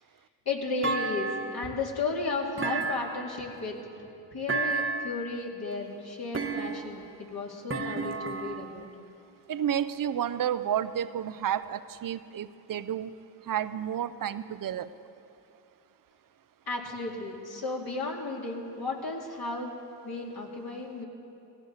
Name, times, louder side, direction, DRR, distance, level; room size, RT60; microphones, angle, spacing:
voice 1, 0.5-3.8 4.3-8.9 16.7-19.7 20.0-21.1, left 3 dB, 50° left, -1 dB, 2.7 m, -34 dB
Thump thud, 0.8-1.8 2.6-3.5 4.5-5.2 6.3-7.0 7.7-8.7, right 4 dB, 25° right, 1.2 m, -32 dB
voice 2, 9.5-13.1 13.5-14.9, right 9 dB, 45° right, 13 dB, 0.7 m, -31 dB
18.0 x 16.0 x 4.1 m, 2.6 s
supercardioid pair, 65°, 48 cm